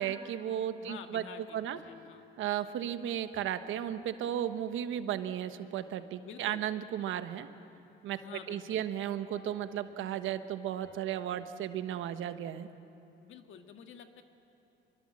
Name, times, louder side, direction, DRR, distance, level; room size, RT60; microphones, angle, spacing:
voice 1, 0.0-1.2 1.5-1.8 2.4-7.5 8.0-8.2 8.5-12.7, right 10 dB, 85° right, 10 dB, 1.1 m, -34 dB
voice 2, 0.8-2.3 6.2-6.6 8.1-8.8 13.2-14.2, left 7 dB, 75° left, 6 dB, 1.7 m, -49 dB
sound 1, 1.6-5.1 9.3-11.8, left 4 dB, 60° left, 4.4 m, -59 dB
25.0 x 23.0 x 7.6 m, 2.7 s
cardioid pair, 90°, 20 cm